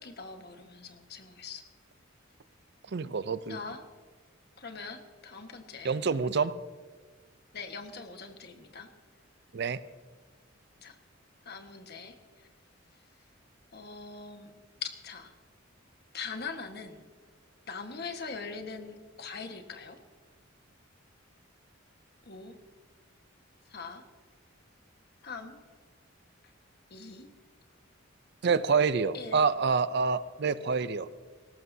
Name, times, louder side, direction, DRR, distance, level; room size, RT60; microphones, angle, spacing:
voice 1, 0.0-1.6 3.5-3.8 4.6-6.0 7.5-8.9 10.8-11.0 11.4-12.1 13.7-14.5 14.8-15.3 16.1-17.0 17.7-20.0 22.2-22.5 23.7-24.0 25.2-25.6 26.9-27.3 29.1-29.4, left 5 dB, 50° left, 6 dB, 1.4 m, -42 dB
voice 2, 2.9-3.6 5.8-6.5 9.5-9.8 28.4-31.1, right 5 dB, 55° right, 15 dB, 0.5 m, -27 dB
19.5 x 17.5 x 2.7 m, 1.5 s
head